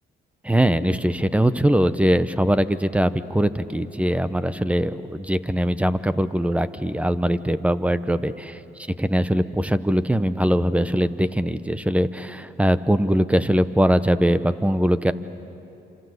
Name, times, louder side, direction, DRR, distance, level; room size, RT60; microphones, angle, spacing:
voice 1, 0.4-8.5 9.0-15.1, equal, 5° right, 12 dB, 1.0 m, -21 dB
27.5 x 27.0 x 8.0 m, 2.8 s
cardioid pair, 90°, 20 cm